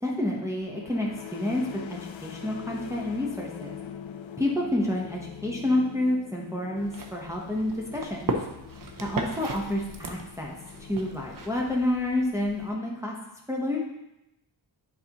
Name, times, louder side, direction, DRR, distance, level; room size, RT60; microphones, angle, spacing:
voice 1, 0.0-3.8 4.4-8.4 9.0-10.6 10.9-13.1 13.5-13.8, left 1 dB, 5° right, -3 dB, 0.8 m, -29 dB
sound 1, 0.6-12.2, left 9 dB, 80° left, 0.5 m, -43 dB
sound 2, 6.7-12.7, right 3 dB, 45° right, 0.7 m, -37 dB
8.3 x 4.1 x 2.9 m, 0.88 s
wide cardioid pair, 105°, 46 cm